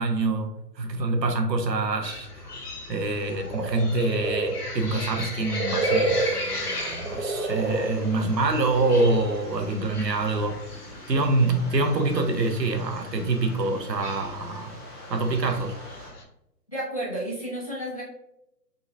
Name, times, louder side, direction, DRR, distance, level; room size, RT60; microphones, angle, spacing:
voice 1, 0.0-2.3 2.9-10.8 11.1-14.8 15.1-15.8, right 2 dB, 80° right, 5 dB, 1.0 m, -25 dB
sound 1, 2.0-16.2, left 2 dB, 65° left, 1.4 m, -37 dB
sound 2, 3.5-9.3 9.5-9.6, right 2 dB, 45° right, 0.9 m, -29 dB
sound 3, 6.4-16.1, left 1 dB, 10° right, 1.6 m, -46 dB
voice 2, 16.7-18.0, right 1 dB, 20° left, -7 dB, 0.8 m, -31 dB
4.3 x 3.9 x 2.5 m, 0.82 s
hypercardioid pair, 175°, 49 cm